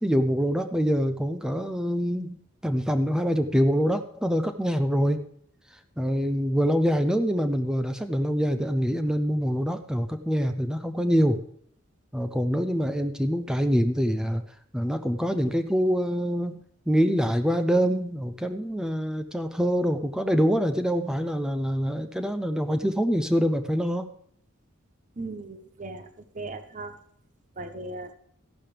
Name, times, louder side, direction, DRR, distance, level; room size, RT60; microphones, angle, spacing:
voice 1, 0.0-2.4 2.6-5.2 6.0-11.4 12.1-14.4 14.7-24.1, equal, 5° right, 8 dB, 0.6 m, -25 dB
voice 2, 25.2-26.1 26.3-27.0 27.6-28.1, right 2 dB, 35° right, 8 dB, 1.2 m, -37 dB
14.0 x 11.5 x 3.4 m, 0.65 s
head